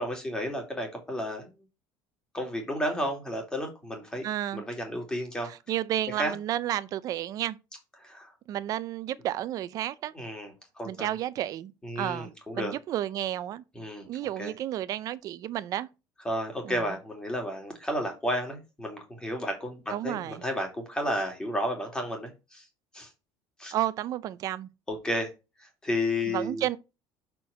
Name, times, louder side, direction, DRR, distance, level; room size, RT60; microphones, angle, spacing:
voice 1, 0.0-1.5 2.3-4.2 4.5-5.5 6.2-6.3 8.0-8.3 10.1-11.1 11.8-12.7 13.7-14.1 14.4-14.5 16.2-22.6 22.9-23.1 23.6-23.7 24.9-25.3 25.6-26.6, equal, 10° left, 2.4 m, -32 dB
voice 2, 4.2-4.6 5.4-7.6 8.5-10.1 10.9-13.6 14.1-15.9 16.6-16.8 19.9-20.4 23.7-24.7 26.3-26.8, right 12 dB, 45° right, 0.6 m, -32 dB
6.1 x 4.6 x 6.3 m
cardioid pair, 155°, 8 cm